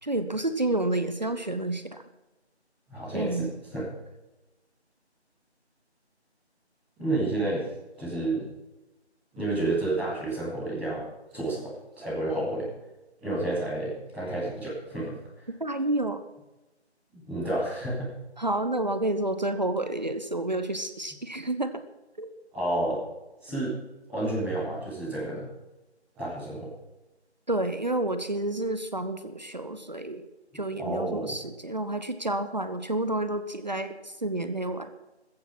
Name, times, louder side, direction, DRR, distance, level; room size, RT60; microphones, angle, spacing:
voice 1, 0.0-2.0 3.1-3.5 15.6-16.2 18.4-21.8 22.2-22.3 27.5-30.2 30.5-34.9, right 1 dB, 40° right, 10 dB, 1.0 m, -29 dB
voice 2, 2.9-3.8 7.0-7.7 7.9-8.4 9.3-12.6 13.2-15.5 17.2-18.1 22.5-23.0 23.4-23.8 24.1-25.4 26.1-26.7 30.5-31.3, right 2 dB, ahead, -24 dB, 1.3 m, -30 dB
15.5 x 14.5 x 6.0 m, 1.1 s
figure-of-eight pair, 165°, 34 cm